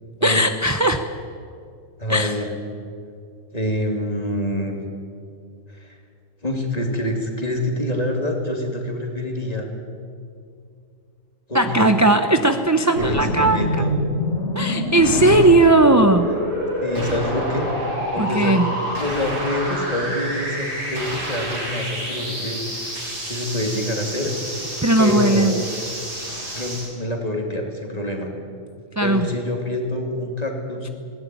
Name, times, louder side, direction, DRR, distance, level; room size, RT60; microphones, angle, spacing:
voice 1, 0.2-1.0 2.1-2.4 11.5-13.9 14.5-16.3 18.2-18.7 24.8-25.5 29.0-29.3, right 2 dB, 20° right, 7 dB, 0.6 m, -17 dB
voice 2, 2.0-2.5 3.5-4.8 5.7-6.0 6.4-9.7 11.5-11.9 13.0-13.9 15.0-15.4 16.8-17.7 18.1-23.0 23.3-24.3 25.0-25.7 26.5-28.3 29.0-30.9, left 1 dB, 30° left, 2 dB, 3.0 m, -26 dB
sound 1, 13.0-26.9, equal, 70° right, 6.6 m, -27 dB
20.5 x 17.5 x 9.2 m, 2.4 s
omnidirectional pair, 1.4 m